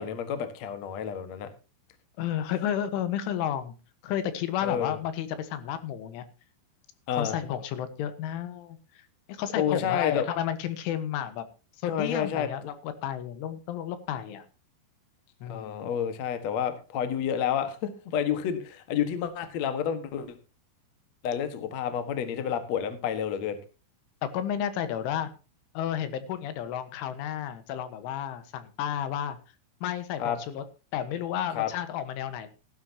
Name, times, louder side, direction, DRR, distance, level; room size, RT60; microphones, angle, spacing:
voice 1, 0.0-1.5 4.6-5.0 7.1-7.4 9.5-10.2 11.9-12.5 15.5-20.3 21.2-23.6 30.2-30.4 31.5-31.7, left 8 dB, 60° left, 9 dB, 1.8 m, -29 dB
voice 2, 2.2-3.8 4.0-6.3 7.1-11.5 11.8-14.5 15.4-15.9 24.2-25.3 25.8-29.4 29.8-30.7 30.9-32.5, left 10 dB, 80° left, 11 dB, 3.9 m, -32 dB
17.5 x 12.5 x 2.9 m, 0.32 s
omnidirectional pair, 5.6 m